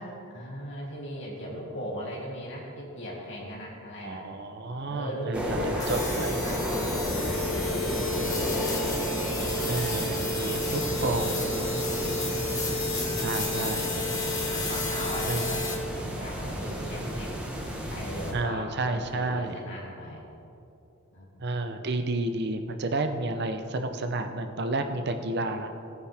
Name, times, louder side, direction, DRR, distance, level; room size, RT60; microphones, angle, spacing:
voice 1, 0.3-4.3 4.9-8.7 9.7-11.2 11.9-13.0 14.5-17.3 17.9-20.2 21.1-21.3 21.5-21.8 24.9-25.3, equal, 55° left, -4 dB, 2.9 m, -39 dB
voice 2, 4.0-6.4 9.7-11.7 13.1-13.9 15.3-15.5 18.3-19.5 21.4-25.7, right 2 dB, 50° right, 7 dB, 0.7 m, -31 dB
sound 1, 5.3-18.3, equal, 5° right, 1.3 m, -32 dB
sound 2, 5.8-15.8, left 2 dB, 15° left, 1.5 m, -31 dB
17.5 x 9.7 x 3.5 m, 2.8 s
head